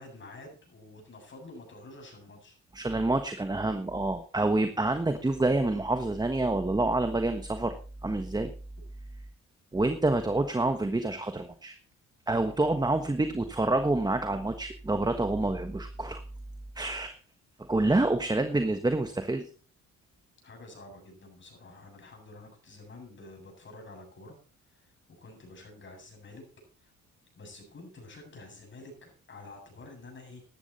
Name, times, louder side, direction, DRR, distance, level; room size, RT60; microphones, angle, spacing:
voice 1, 0.0-2.6 17.8-18.1 20.4-24.4 24.7-26.5 26.8-26.9 27.4-30.4, left 2 dB, 40° left, 2 dB, 7.9 m, -49 dB
voice 2, 2.7-7.7 8.0-8.5 9.7-11.8 12.3-16.2 16.7-17.1 17.6-19.5, right 2 dB, 15° right, 8 dB, 1.4 m, -27 dB
14.0 x 11.5 x 4.2 m, 0.38 s
cardioid pair, 90°, 30 cm